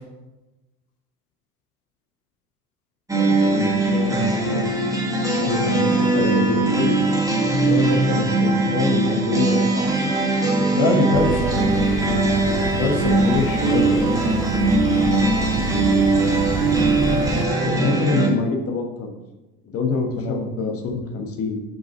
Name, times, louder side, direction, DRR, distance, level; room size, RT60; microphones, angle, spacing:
sound 1, 3.1-18.3, right 2 dB, 5° right, 1.2 m, -20 dB
voice 1, 3.4-4.7 5.4-7.0 7.5-10.0 17.6-19.1 19.6-21.6, left 4 dB, 30° left, 3 dB, 1.2 m, -25 dB
voice 2, 10.8-11.4 12.8-14.3 20.2-20.4, left 4 dB, 55° left, 2 dB, 1.1 m, -23 dB
sound 2, 11.1-17.5, right 4 dB, 30° right, 0.7 m, -27 dB
5.6 x 5.2 x 4.4 m, 1.0 s
figure-of-eight pair, 70°, 47 cm